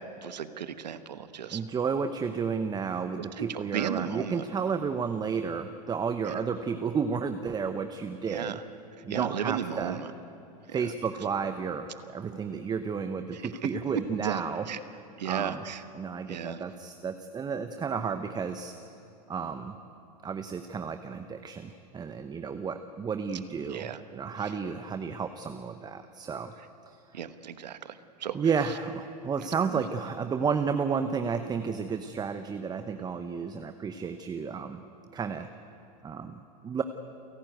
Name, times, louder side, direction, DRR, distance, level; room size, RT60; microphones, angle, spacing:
voice 1, 0.2-1.6 3.4-4.4 6.3-6.4 8.3-8.6 9.1-10.1 10.7-10.8 13.3-13.4 14.2-14.4 14.7-14.8 15.2-15.8 16.3-16.6 23.7-24.0 27.1-28.4 29.7-29.8, right 9 dB, 85° right, 12 dB, 1.2 m, -35 dB
voice 2, 1.5-8.6 9.0-10.0 10.7-15.6 15.9-18.7 19.3-19.8 20.2-26.5 26.9-27.0 28.3-34.8 35.1-35.5 36.0-36.8, right 6 dB, 20° right, 9 dB, 0.9 m, -32 dB
29.0 x 11.5 x 9.2 m, 2.9 s
hypercardioid pair, 110°, 21 cm